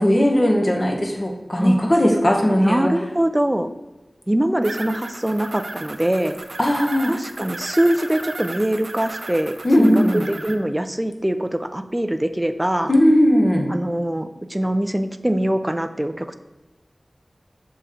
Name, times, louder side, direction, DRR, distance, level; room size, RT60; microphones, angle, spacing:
voice 1, 0.0-2.9 6.6-7.1 9.6-10.2 12.9-13.7, equal, 35° left, 1 dB, 1.1 m, -17 dB
voice 2, 2.6-3.7 4.3-6.4 7.1-12.9 13.7-16.3, right 1 dB, 15° right, 9 dB, 0.4 m, -23 dB
sound 1, 4.6-10.5, right 2 dB, 75° right, 0.5 m, -35 dB
6.8 x 3.7 x 4.3 m, 1.1 s
wide cardioid pair, 65°, 0 cm